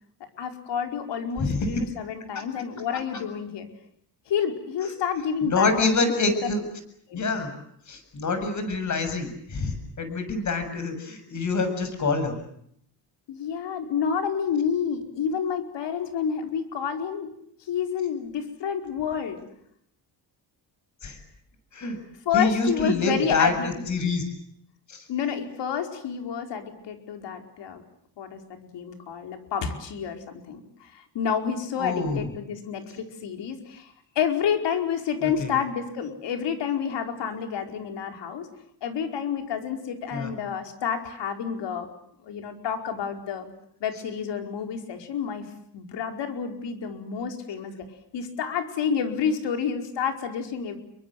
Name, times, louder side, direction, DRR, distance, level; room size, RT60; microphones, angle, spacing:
voice 1, 0.4-3.7 4.3-6.3 7.1-7.2 13.3-17.3 17.7-19.4 22.2-23.7 25.1-27.8 28.2-38.5 38.8-41.9 42.2-43.5 43.8-45.5 45.7-47.8 48.1-50.8, left 7 dB, 85° left, 5 dB, 4.9 m, -29 dB
voice 2, 1.4-1.7 5.4-6.6 7.1-7.5 7.9-12.3 21.0-21.2 21.7-22.0 22.3-23.5 23.9-24.2 24.9-25.0 31.8-32.3 35.2-35.5 40.1-40.3, left 3 dB, 45° left, 9 dB, 7.2 m, -26 dB
29.5 x 23.5 x 7.7 m, 0.71 s
cardioid pair, 140°, 41 cm